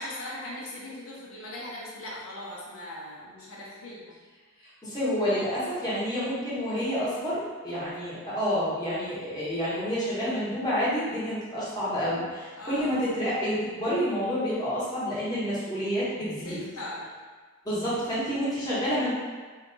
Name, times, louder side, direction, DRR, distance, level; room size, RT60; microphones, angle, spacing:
voice 1, 0.0-4.1 12.6-13.0 16.4-17.1, left 1 dB, 75° left, -5 dB, 0.7 m, -39 dB
voice 2, 4.8-16.6 17.6-19.1, equal, 15° left, -10 dB, 1.0 m, -29 dB
2.8 x 2.3 x 3.8 m, 1.4 s
head